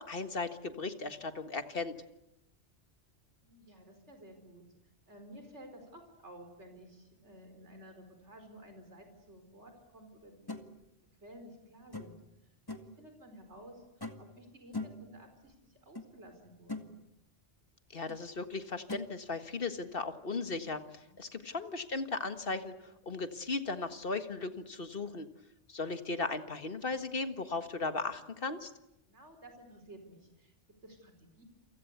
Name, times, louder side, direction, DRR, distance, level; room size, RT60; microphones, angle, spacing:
voice 1, 0.0-1.9 17.9-25.3 25.7-28.7, left 3 dB, 50° left, 9 dB, 1.8 m, -37 dB
voice 2, 3.4-4.6 5.1-10.7 11.2-12.2 12.8-17.0 20.9-21.2 29.0-30.5 30.8-31.4, right 1 dB, 70° right, 6 dB, 5.1 m, -54 dB
sound 1, 10.5-10.7 11.9-12.3 12.7-13.0 14.0-14.3 14.7-15.1 16.0-16.1 16.4-16.9 18.1-18.2 18.9-19.1, left 2 dB, 20° left, 1.9 m, -41 dB
29.0 x 24.5 x 8.2 m, 0.86 s
omnidirectional pair, 1.2 m